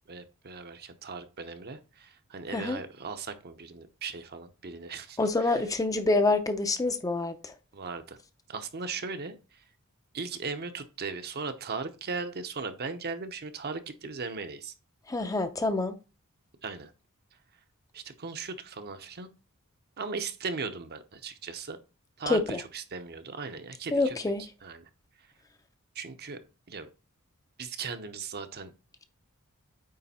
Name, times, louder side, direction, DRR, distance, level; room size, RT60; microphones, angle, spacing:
voice 1, 0.1-5.2 7.7-8.2 8.5-9.4 10.1-14.7 16.6-16.9 17.9-19.3 20.0-21.8 22.2-22.4 22.7-24.2 24.6-24.9 25.9-26.4 26.7-26.9 27.6-28.7, right 4 dB, 50° right, 0.8 m, -37 dB
voice 2, 2.5-2.8 5.2-7.5 15.1-15.9 22.3-22.6 23.9-24.4, left 2 dB, 15° left, 0.5 m, -27 dB
8.7 x 3.2 x 4.2 m
head